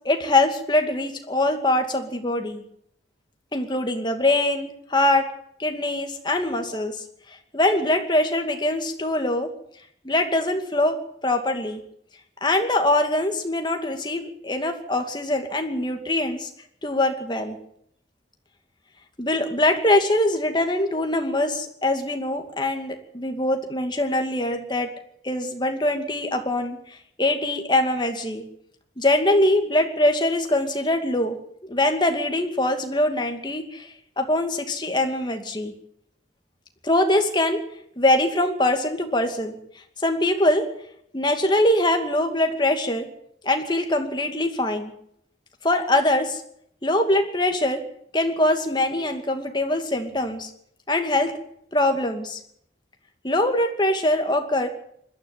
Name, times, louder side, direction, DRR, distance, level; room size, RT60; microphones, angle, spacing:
voice 1, 0.0-2.6 3.5-5.3 5.6-9.5 10.0-11.0 11.2-11.8 12.4-16.5 16.8-17.6 19.2-24.9 25.2-28.4 29.0-31.4 31.6-35.7 36.8-37.6 38.0-39.6 40.0-40.6 41.1-43.1 43.4-44.9 45.6-46.4 46.8-47.8 48.1-50.5 50.9-51.4 51.7-52.4 53.2-54.7, left 1 dB, 25° left, 5 dB, 2.4 m, -23 dB
21.0 x 13.0 x 9.3 m, 0.70 s
head